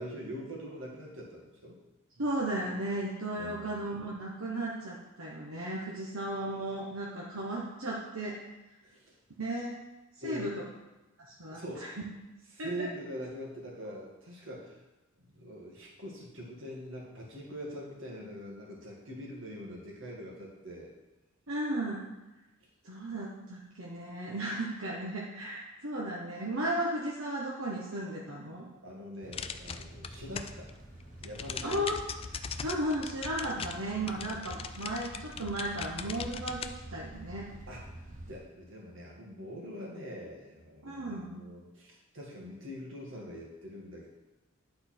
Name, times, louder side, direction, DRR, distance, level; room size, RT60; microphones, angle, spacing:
voice 1, 0.0-1.8 2.2-2.3 3.4-3.8 8.8-9.2 10.2-10.6 11.5-11.9 12.5-14.8 15.3-20.9 28.8-30.7 31.2-31.8 33.5-33.7 34.3-34.7 37.7-44.1, equal, 60° right, -2 dB, 1.9 m, -43 dB
voice 2, 2.2-8.4 9.4-9.8 10.2-10.5 11.4-11.9 12.6-12.9 21.5-22.1 22.8-28.7 31.6-32.0 32.6-37.5 40.8-41.4, right 1 dB, 80° right, -4 dB, 1.2 m, -35 dB
sound 1, 29.2-38.4, right 1 dB, 35° right, 1.0 m, -48 dB
sound 2, 29.3-30.7 31.0-36.7, left 6 dB, 25° left, 0.3 m, -40 dB
10.5 x 4.2 x 4.4 m, 1.1 s
head